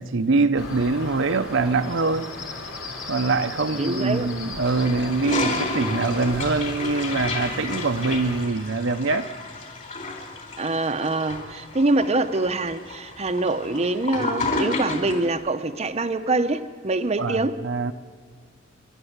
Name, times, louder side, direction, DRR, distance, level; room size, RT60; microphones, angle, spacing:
voice 1, 0.0-2.3 3.1-9.3 17.2-17.9, right 3 dB, 65° right, 0.7 m, -24 dB
sound 1, 0.5-8.4, left 2 dB, 85° left, 3.8 m, -36 dB
voice 2, 3.8-4.3 5.3-5.5 10.6-17.6, right 2 dB, 35° right, 0.8 m, -25 dB
Toilet flush, 4.6-15.3, left 3 dB, 40° left, 4.1 m, -31 dB
29.0 x 12.0 x 8.1 m
head